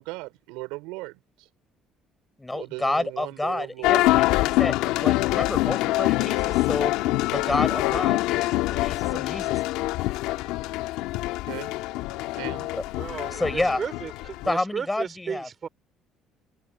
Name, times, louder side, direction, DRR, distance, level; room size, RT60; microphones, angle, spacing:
voice 1, 0.0-1.5 2.5-4.0 11.4-11.7 12.3-12.7, right 24 dB, 85° right, 5.7 m, -37 dB
voice 2, 2.4-4.7 5.0-6.9 7.3-9.6 12.7-12.8 13.2-13.8 14.4-15.5, left 2 dB, 10° left, 6.6 m, -29 dB
sound 1, 3.8-14.5, left 18 dB, 80° left, 1.9 m, -25 dB
voice 3, 13.0-15.7, right 6 dB, 40° right, 3.8 m, -34 dB
supercardioid pair, 80°, 0 cm